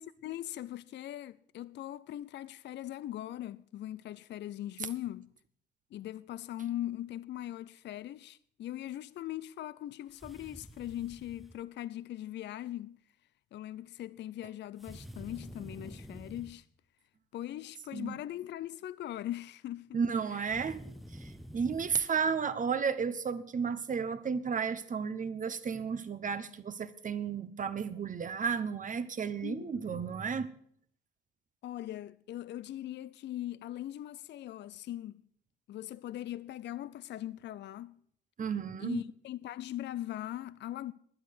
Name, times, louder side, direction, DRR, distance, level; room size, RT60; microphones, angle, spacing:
voice 1, 0.0-5.3 5.9-13.0 13.5-16.7 17.3-20.0 20.3-20.6 29.4-30.1 31.6-35.2 35.7-38.0 38.8-40.9, left 13 dB, 60° left, 0.5 m, -40 dB
sound 1, 10.1-11.6 14.8-16.6 20.4-22.1, equal, ahead, 0.8 m, -48 dB
voice 2, 19.9-20.8 21.2-30.5 38.4-39.0, right 6 dB, 40° right, 1.0 m, -33 dB
12.0 x 9.3 x 6.6 m
cardioid pair, 90°, 20 cm